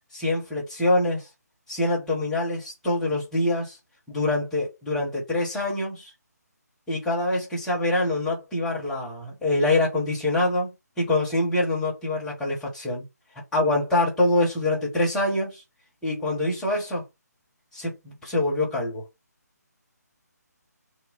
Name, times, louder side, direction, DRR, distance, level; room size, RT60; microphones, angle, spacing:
voice 1, 0.1-1.3 1.7-3.8 4.1-6.1 6.9-13.0 13.5-15.6 16.0-17.0 17.7-19.0, left 2 dB, 5° left, 1.0 m, -25 dB
3.0 x 2.1 x 3.8 m
figure-of-eight pair, 155°, 9 cm